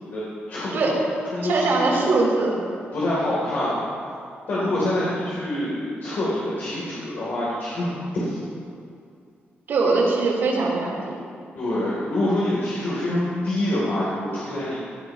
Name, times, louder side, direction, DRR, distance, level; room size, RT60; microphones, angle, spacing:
voice 1, 0.0-0.9 1.3-2.0 2.9-3.9 4.5-8.4 11.6-14.8, left 1 dB, 55° left, -8 dB, 3.3 m, -26 dB
voice 2, 1.4-2.5 4.6-4.8 9.7-11.2, right 3 dB, 70° right, -4 dB, 3.7 m, -22 dB
18.0 x 15.0 x 3.1 m, 2.4 s
wide cardioid pair, 175°, 4 cm